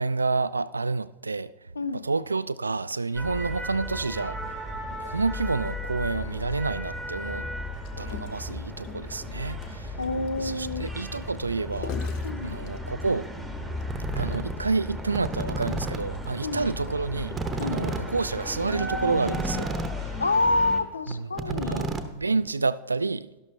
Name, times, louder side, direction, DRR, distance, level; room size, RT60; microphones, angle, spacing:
voice 1, 0.0-1.5 1.9-4.4 5.0-7.5 8.0-10.0 10.4-11.9 12.4-13.3 14.1-17.3 17.6-19.7 20.0-20.2 21.1-23.3, right 3 dB, 80° right, 0.3 m, -29 dB
voice 2, 1.8-2.1 10.0-10.8 12.2-12.6 16.4-16.6 17.6-17.9 20.2-21.9, left 2 dB, 75° left, 0.5 m, -27 dB
sound 1, 3.1-20.8, left 1 dB, 5° left, 1.4 m, -35 dB
Gurgling, 7.7-13.2 13.8-13.9 14.2-14.4 14.7-14.8 15.5-18.0 18.7-18.8, left 7 dB, 45° left, 0.8 m, -44 dB
sound 2, 13.9-14.5 15.0-16.0 16.3-16.4 16.6-16.7 17.0-17.1 17.3-20.0 20.3-20.5 20.8-20.9 21.1-22.5, right 2 dB, 15° right, 0.9 m, -31 dB
12.5 x 11.5 x 2.8 m
figure-of-eight pair, 90°, 0 cm